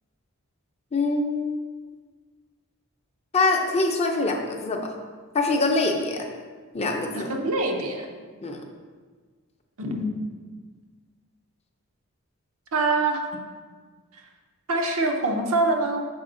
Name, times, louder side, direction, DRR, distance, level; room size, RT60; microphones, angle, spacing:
voice 1, 0.9-1.6 3.3-4.9 5.3-6.3 6.7-7.3 8.4-8.6, left 3 dB, 30° left, 2 dB, 0.6 m, -24 dB
voice 2, 7.1-8.1 9.8-10.1 12.7-13.2 14.7-16.0, right 2 dB, 70° right, 2 dB, 0.8 m, -24 dB
6.4 x 4.3 x 3.8 m, 1.5 s
head